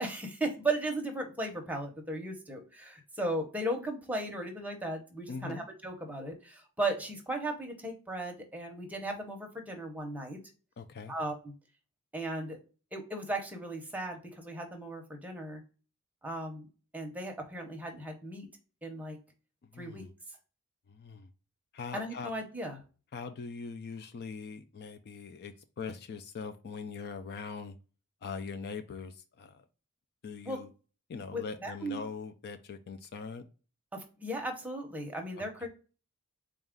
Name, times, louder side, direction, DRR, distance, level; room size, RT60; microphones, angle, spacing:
voice 1, 0.0-10.4 11.1-11.5 12.1-12.6 12.9-15.6 16.2-16.7 16.9-18.5 18.8-19.2 19.7-20.0 21.9-22.8 30.4-30.6 31.3-32.0 33.9-35.7, right 1 dB, 5° right, 2 dB, 0.7 m, -36 dB
voice 2, 5.3-5.7 10.8-11.1 19.7-20.1 20.9-21.3 21.7-22.3 23.1-27.8 28.2-29.6 30.2-30.7 31.1-33.5 35.4-35.7, left 5 dB, 45° left, 8 dB, 0.3 m, -42 dB
4.0 x 2.4 x 3.5 m, 0.35 s
head